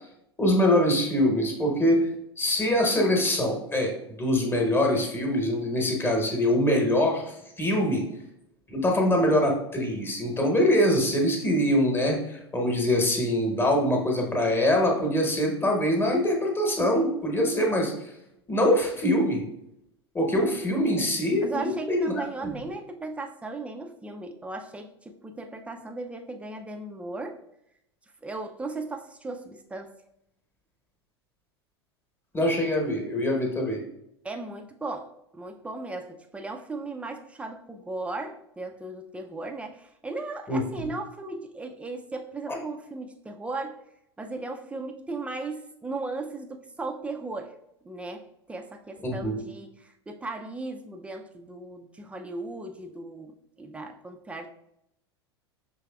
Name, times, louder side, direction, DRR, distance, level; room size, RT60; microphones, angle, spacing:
voice 1, 0.4-2.1 2.4-8.0 8.7-18.1 18.5-19.4 20.1-22.1 22.4-22.6 32.3-33.8 40.5-40.9 49.0-49.4, left 1 dB, 15° left, 1 dB, 1.1 m, -24 dB
voice 2, 21.4-27.4 28.2-29.9 34.2-43.8 44.2-47.5 47.8-54.5, right 3 dB, 10° right, 4 dB, 0.4 m, -36 dB
5.5 x 3.3 x 2.3 m, 0.80 s
figure-of-eight pair, 85°, 14 cm